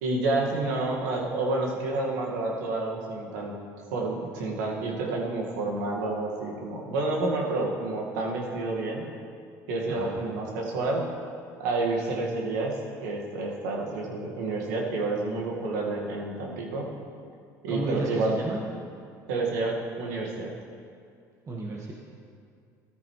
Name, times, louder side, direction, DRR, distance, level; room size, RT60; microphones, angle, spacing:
voice 1, 0.0-3.6 3.9-9.0 9.7-11.1 11.6-16.9 17.6-18.4 19.3-20.5, right 2 dB, 85° right, -1 dB, 2.0 m, -29 dB
voice 2, 9.9-10.2 17.7-18.6 21.5-21.9, right 2 dB, 35° right, -3 dB, 1.7 m, -32 dB
13.5 x 12.5 x 3.3 m, 2.3 s
supercardioid pair, 75°, 9 cm